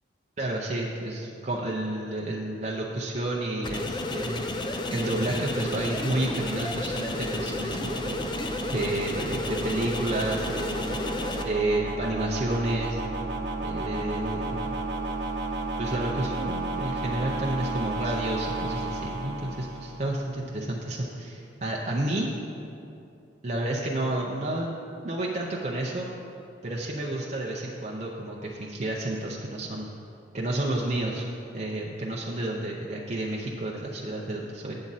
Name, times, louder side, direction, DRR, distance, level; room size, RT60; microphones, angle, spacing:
voice 1, 0.4-4.5 4.9-8.2 8.7-11.0 11.4-13.0 13.6-14.7 15.8-22.3 23.4-24.8 25.0-26.1 26.6-29.9 30.3-31.2 31.5-34.8, right 1 dB, 40° right, -3 dB, 0.6 m, -30 dB
sound 1, 3.6-11.4, left 2 dB, 25° left, 0.5 m, -32 dB
sound 2, 4.4-20.4, right 2 dB, 80° right, 0.9 m, -34 dB
8.7 x 7.3 x 4.0 m, 2.7 s
head